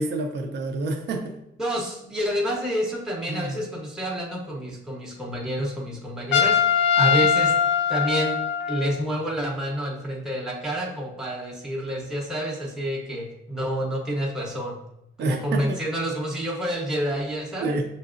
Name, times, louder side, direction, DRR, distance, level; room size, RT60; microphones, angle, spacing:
voice 1, 0.0-1.4 3.3-3.6 7.0-7.3 15.2-15.8 17.6-18.0, right 2 dB, 60° right, 3 dB, 0.6 m, -28 dB
voice 2, 1.6-7.5 7.9-8.4 8.7-14.8 15.2-17.8, equal, 5° right, -2 dB, 0.7 m, -29 dB
Trumpet, 6.3-9.0, left 8 dB, 70° left, 0.5 m, -21 dB
5.3 x 2.8 x 2.5 m, 0.84 s
cardioid pair, 90°, 20 cm